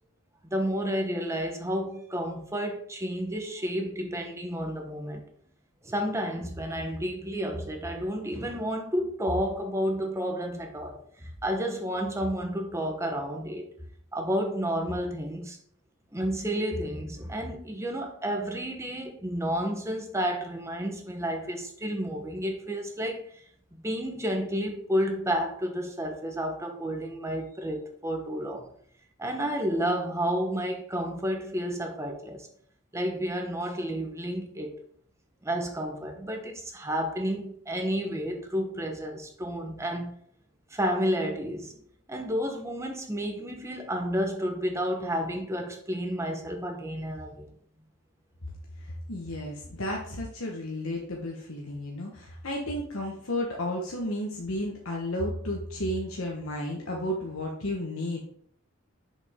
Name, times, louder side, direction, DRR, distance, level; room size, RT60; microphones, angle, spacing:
voice 1, 0.4-5.3 5.8-13.7 14.1-15.6 16.1-23.4 23.7-28.7 29.2-32.5 32.9-34.7 35.4-40.1 40.7-41.7 42.1-47.5, equal, 15° right, 3 dB, 1.0 m, -31 dB
voice 2, 48.8-58.2, left 1 dB, 75° left, -1 dB, 1.2 m, -33 dB
6.9 x 5.3 x 3.7 m, 0.63 s
head